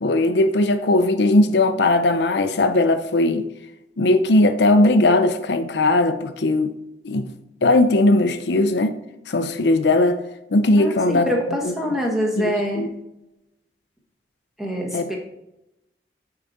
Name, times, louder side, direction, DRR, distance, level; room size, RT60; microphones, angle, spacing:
voice 1, 0.0-3.5 4.0-6.7 7.0-7.3 7.6-9.0 9.3-10.2 10.5-11.3 12.4-12.9 14.9-15.1, left 2 dB, 75° left, 0.6 m, -18 dB
voice 2, 10.8-12.9 14.6-15.2, equal, ahead, 1.3 m, -25 dB
8.6 x 4.8 x 4.2 m
head